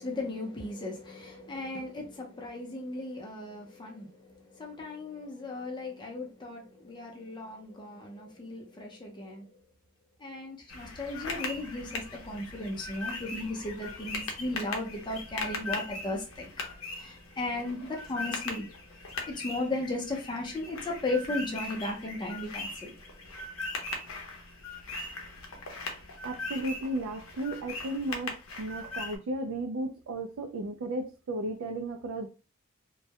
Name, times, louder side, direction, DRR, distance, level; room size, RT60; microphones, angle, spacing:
voice 1, 0.0-9.6 10.2-16.5 16.8-18.7 19.3-23.0, left 2 dB, 20° left, 0.5 m, -36 dB
sound 1, 10.7-29.2, left 3 dB, 90° left, 0.6 m, -39 dB
voice 2, 26.2-32.3, right 1 dB, 75° right, 0.4 m, -34 dB
2.2 x 2.1 x 2.7 m
head